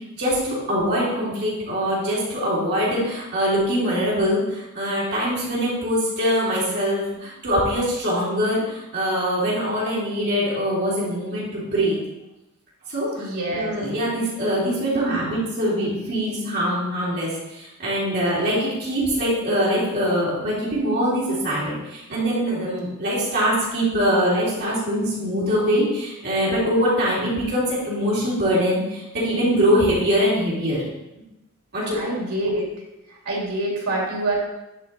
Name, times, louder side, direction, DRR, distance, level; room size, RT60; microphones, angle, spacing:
voice 1, 0.0-12.0 12.9-13.3 13.5-30.8 31.7-32.0, equal, 50° right, -7 dB, 3.4 m, -23 dB
voice 2, 13.1-13.7 31.9-32.7 33.2-34.4, right 2 dB, 80° right, -3 dB, 3.1 m, -26 dB
11.0 x 5.1 x 4.3 m, 0.97 s
head